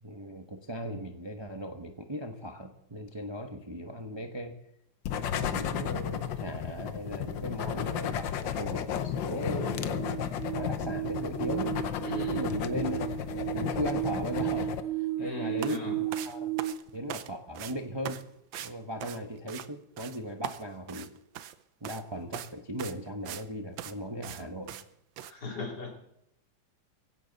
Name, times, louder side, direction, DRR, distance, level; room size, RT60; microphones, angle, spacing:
voice 1, 0.0-4.6 5.1-10.3 10.5-11.8 12.4-13.1 13.3-16.5 16.9-18.2 18.6-21.1 21.8-24.7, equal, 20° right, 4 dB, 0.8 m, -38 dB
sound 1, 5.0-14.8, left 9 dB, 80° left, 1.6 m, -33 dB
sound 2, 8.7-16.7, right 13 dB, 40° right, 0.7 m, -34 dB
voice 2, 12.0-12.4 15.2-16.0 25.3-26.1, left 3 dB, 60° left, 0 dB, 3.8 m, -39 dB
sound 3, 15.6-15.8 16.1-17.3 17.5-17.7 18.1-18.2 18.5-18.7 19.0-19.7 20.0-20.2 20.4-21.6 21.8-22.0 22.3-22.5 22.8-23.5 23.8-23.9 24.2-24.4 24.7-24.8 25.2-25.3, right 11 dB, 80° right, 1.5 m, -40 dB
18.0 x 16.5 x 4.1 m, 0.79 s
omnidirectional pair, 2.0 m